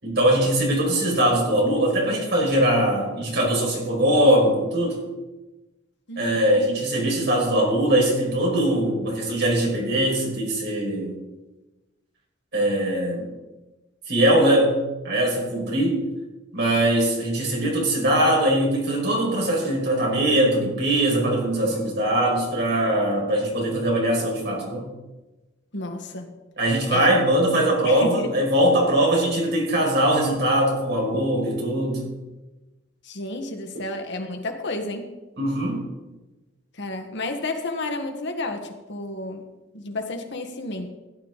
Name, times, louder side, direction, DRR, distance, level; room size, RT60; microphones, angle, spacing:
voice 1, 0.0-5.0 6.2-11.2 12.5-13.3 14.1-16.0 16.5-24.9 26.6-32.0 35.4-35.8, right 1 dB, 60° right, -2 dB, 5.6 m, -21 dB
voice 2, 6.1-6.7 13.2-13.3 25.7-26.3 26.9-27.1 27.8-28.3 33.0-35.1 36.8-39.4 39.7-40.9, left 2 dB, 65° left, 5 dB, 1.6 m, -31 dB
16.0 x 11.0 x 4.1 m, 1.1 s
head